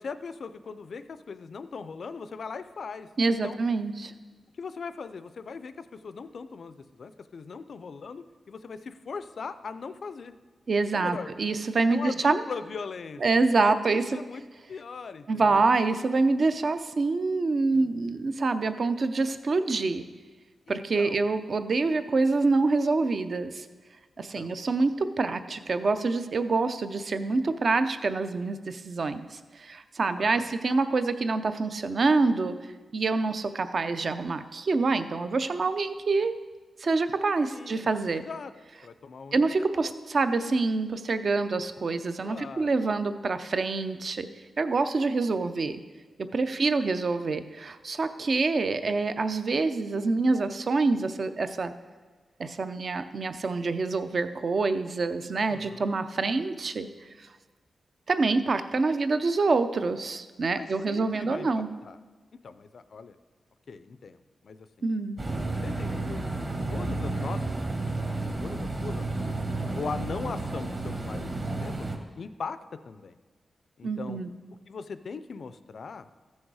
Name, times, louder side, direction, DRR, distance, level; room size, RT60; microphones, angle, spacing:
voice 1, 0.0-3.6 4.6-10.3 10.9-11.3 11.9-14.4 14.7-15.7 17.7-17.9 20.7-21.2 24.3-24.6 30.1-30.4 37.5-38.5 38.8-39.5 42.2-42.7 46.4-46.7 55.5-55.9 60.5-61.5 61.8-62.0 62.4-63.2 63.7-64.9 65.5-68.0 68.4-71.9 72.2-72.6 72.8-73.2 73.8-74.2 74.7-76.1, left 5 dB, 55° left, 12 dB, 0.4 m, -40 dB
voice 2, 3.2-4.1 10.7-12.4 13.2-14.2 15.3-20.0 20.7-23.7 24.2-32.6 32.9-36.3 36.8-38.2 39.3-44.3 44.6-45.8 46.3-51.7 52.4-56.9 58.1-61.7 64.8-65.2 73.8-74.3, right 3 dB, 45° right, 10 dB, 0.5 m, -26 dB
sound 1, 65.2-72.0, right 2 dB, 30° right, 1.1 m, -31 dB
14.5 x 6.4 x 4.8 m, 1.3 s
wide cardioid pair, 165°, 0 cm